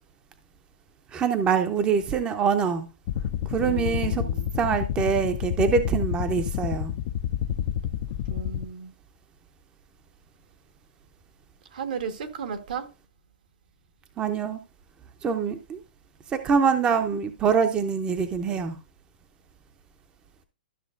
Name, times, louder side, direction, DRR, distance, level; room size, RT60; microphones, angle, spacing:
voice 1, 1.1-2.9 3.5-4.3 4.6-6.9 14.2-14.6 15.2-15.8 16.3-18.8, right 6 dB, 20° right, 0.7 m, -24 dB
sound 1, 3.1-8.7, left 10 dB, 45° left, 0.4 m, -29 dB
voice 2, 3.6-4.5 8.3-8.9 11.7-12.9, right 6 dB, 65° right, 1.5 m, -35 dB
12.5 x 6.2 x 2.5 m
hypercardioid pair, 130°, 5 cm